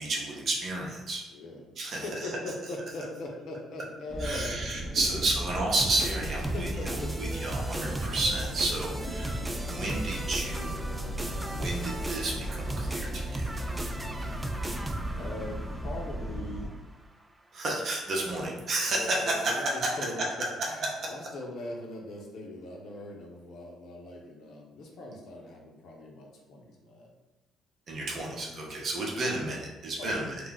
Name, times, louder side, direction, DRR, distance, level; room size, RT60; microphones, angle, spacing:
voice 1, 0.0-1.2 1.8-2.0 4.2-6.7 7.2-8.9 9.7-10.8 11.5-13.5 17.5-19.6 21.0-21.1 27.9-30.3, right 2 dB, 55° right, -2 dB, 0.8 m, -31 dB
voice 2, 1.3-4.6 5.0-5.4 6.5-7.2 9.1-9.7 14.2-14.9 15.2-16.7 18.3-18.5 18.8-27.1 28.1-28.9 30.0-30.4, left 1 dB, 70° left, 0 dB, 0.6 m, -41 dB
sound 1, 4.1-16.7, equal, 5° left, 0.8 m, -36 dB
sound 2, 5.7-16.8, right 1 dB, 15° right, 0.3 m, -37 dB
2.3 x 2.2 x 3.9 m, 1.1 s
supercardioid pair, 70°, 0 cm